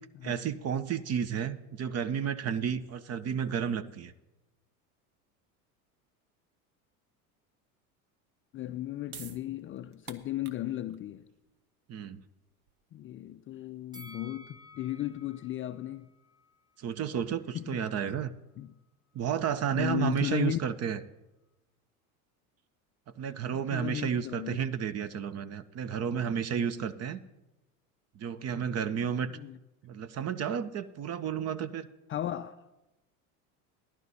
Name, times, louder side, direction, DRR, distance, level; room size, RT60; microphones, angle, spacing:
voice 1, 0.2-4.1 11.9-12.2 16.8-18.3 19.1-21.0 23.2-27.2 28.2-29.3 29.8-31.9, right 8 dB, 35° right, 0.7 m, -32 dB
voice 2, 8.5-11.3 12.9-16.1 17.5-17.8 18.6-18.7 19.7-20.6 23.5-24.6 29.3-29.6 32.1-32.6, left 13 dB, 30° left, 0.4 m, -35 dB
sound 1, 9.1-15.4, right 7 dB, 80° right, 1.1 m, -53 dB
Bell, 13.9-17.1 17.5-17.6, left 1 dB, 10° right, 0.9 m, -54 dB
16.5 x 11.5 x 4.1 m
hypercardioid pair, 90°, 43 cm